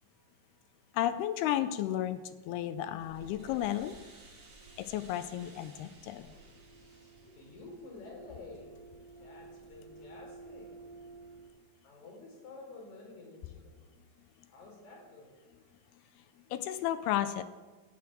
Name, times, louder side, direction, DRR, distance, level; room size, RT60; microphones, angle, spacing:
voice 1, 0.1-1.0 6.7-8.8 9.2-10.7 11.8-13.8 14.5-15.4, left 2 dB, 45° left, -2 dB, 5.7 m, -51 dB
voice 2, 0.9-4.0 4.8-6.3 16.2-16.3 16.5-17.4, left 12 dB, 80° left, 12 dB, 2.5 m, -33 dB
sound 1, 3.0-11.5, right 3 dB, 35° right, 3.2 m, -53 dB
17.5 x 9.5 x 7.5 m, 1.3 s
omnidirectional pair, 4.8 m